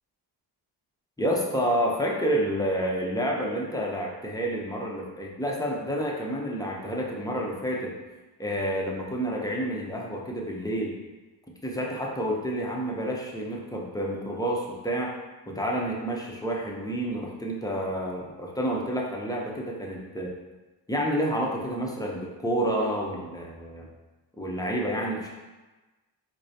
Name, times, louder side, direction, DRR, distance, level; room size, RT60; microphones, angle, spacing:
voice 1, 1.2-7.9 8.4-11.0 11.6-15.1 15.5-20.3 20.9-23.9 24.4-25.3, equal, 10° left, -2 dB, 0.7 m, -29 dB
4.7 x 2.2 x 2.8 m, 1.2 s
supercardioid pair, 55°, 48 cm